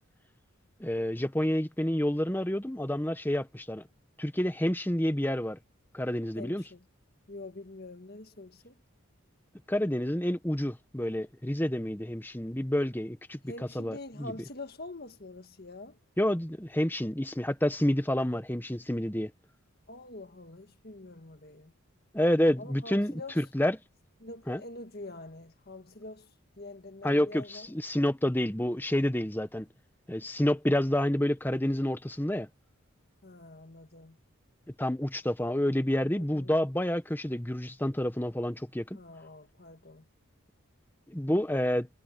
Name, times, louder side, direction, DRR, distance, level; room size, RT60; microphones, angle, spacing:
voice 1, 0.8-3.8 4.2-5.6 5.9-6.6 9.7-14.3 16.2-19.3 22.1-23.8 24.5-24.6 27.0-29.7 30.1-32.5 34.8-39.0 41.1-41.9, left 1 dB, 10° left, 1.1 m, -29 dB
voice 2, 6.4-6.8 7.3-8.8 13.5-16.0 19.9-21.7 22.6-23.4 24.2-26.3 26.6-27.7 33.2-34.2 36.1-36.5 38.9-40.1, left 2 dB, 45° left, 1.8 m, -45 dB
head